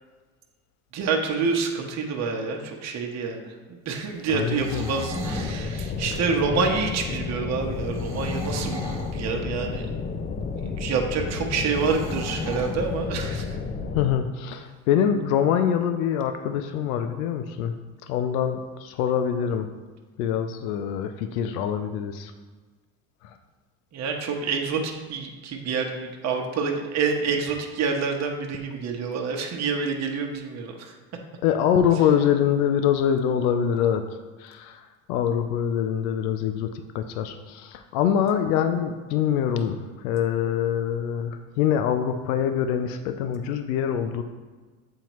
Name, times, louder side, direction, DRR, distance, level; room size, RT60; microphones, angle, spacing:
voice 1, 0.9-8.8 9.1-9.9 10.6-13.6 23.9-30.9, right 5 dB, 40° right, 2 dB, 0.9 m, -27 dB
voice 2, 4.3-4.9 13.9-17.7 18.1-19.7 20.2-22.3 31.4-34.0 34.4-44.2, left 8 dB, 85° left, 8 dB, 0.5 m, -24 dB
sound 1, 4.3-5.5 7.9-9.2 11.7-12.8, right 1 dB, 5° right, 1.3 m, -36 dB
sound 2, 5.1-14.1, left 4 dB, 20° left, 0.4 m, -31 dB
7.5 x 4.4 x 3.0 m, 1.3 s
supercardioid pair, 95°, 41 cm